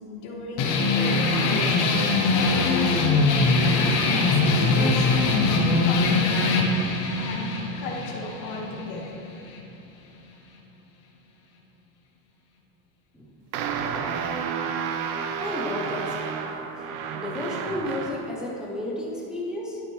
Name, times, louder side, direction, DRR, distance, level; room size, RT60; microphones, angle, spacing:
voice 1, 0.1-3.3 4.1-5.4 5.8-6.7 7.1-9.2, left 2 dB, 75° left, 0 dB, 1.5 m, -36 dB
sound 1, 0.6-9.6, left 3 dB, 40° left, 1.0 m, -22 dB
sound 2, 13.5-18.4, right 6 dB, 75° right, 0.8 m, -31 dB
voice 2, 15.4-16.4 16.9-19.8, left 1 dB, ahead, -4 dB, 0.3 m, -33 dB
11.0 x 6.6 x 3.0 m, 2.9 s
supercardioid pair, 155°, 47 cm